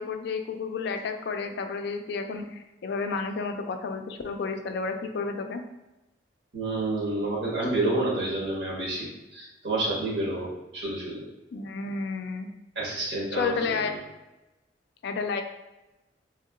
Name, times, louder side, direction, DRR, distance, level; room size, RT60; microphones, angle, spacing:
voice 1, 0.0-5.6 11.5-12.5 13.3-14.0 15.0-15.4, left 4 dB, 65° left, 6 dB, 0.3 m, -31 dB
voice 2, 6.5-11.2 12.7-13.7, right 2 dB, 80° right, -5 dB, 1.3 m, -29 dB
3.2 x 2.8 x 2.4 m, 1.0 s
head